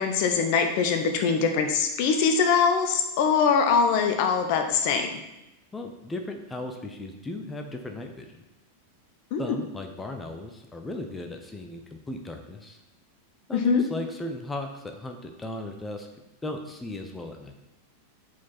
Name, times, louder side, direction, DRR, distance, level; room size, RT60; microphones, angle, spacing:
voice 1, 0.0-5.2 9.3-9.6 13.5-13.8, left 6 dB, 45° left, 5 dB, 0.8 m, -23 dB
voice 2, 5.7-8.4 9.4-12.8 13.5-16.1 16.4-17.5, left 2 dB, 10° left, 4 dB, 0.8 m, -36 dB
8.5 x 4.6 x 4.1 m, 0.93 s
figure-of-eight pair, 90°, 0 cm